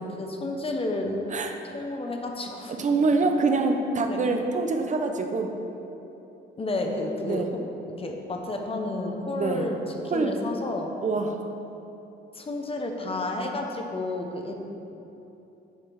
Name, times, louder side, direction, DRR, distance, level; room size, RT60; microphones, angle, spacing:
voice 1, 0.0-1.2 1.7-2.8 4.1-4.2 6.6-7.7 8.0-9.8 10.1-10.9 12.3-14.5, left 2 dB, 30° left, 2 dB, 0.9 m, -31 dB
voice 2, 2.8-5.5 7.2-7.5 9.3-9.7 10.1-10.3 11.0-11.4, right 3 dB, 40° right, 4 dB, 0.7 m, -25 dB
10.0 x 3.6 x 4.6 m, 3.0 s
cardioid pair, 90°, 20 cm